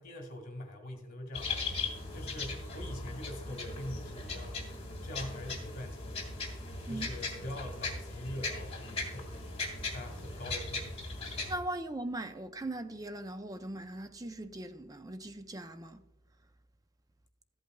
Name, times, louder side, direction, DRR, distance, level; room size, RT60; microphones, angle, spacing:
voice 1, 0.0-4.7 5.0-6.3 6.8-9.4 9.9-10.9 11.2-11.4, left 1 dB, 45° left, 1.8 m, -44 dB
sound 1, 1.3-11.6, left 3 dB, 30° left, 1.7 m, -38 dB
voice 2, 11.5-16.0, right 1 dB, 15° right, 0.4 m, -39 dB
14.0 x 8.2 x 2.2 m
head